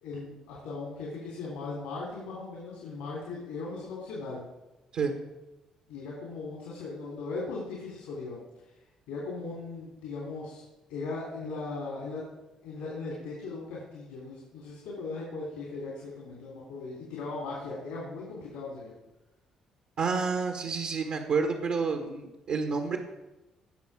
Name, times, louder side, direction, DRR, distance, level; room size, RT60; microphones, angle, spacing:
voice 1, 0.0-4.4 5.9-8.4 9.1-10.6 10.9-12.2 12.6-18.9, left 3 dB, 85° left, -4 dB, 3.4 m, -38 dB
voice 2, 20.0-23.0, right 5 dB, 70° right, 3 dB, 1.6 m, -29 dB
18.5 x 6.6 x 5.0 m, 1.0 s
hypercardioid pair, 50°, 2 cm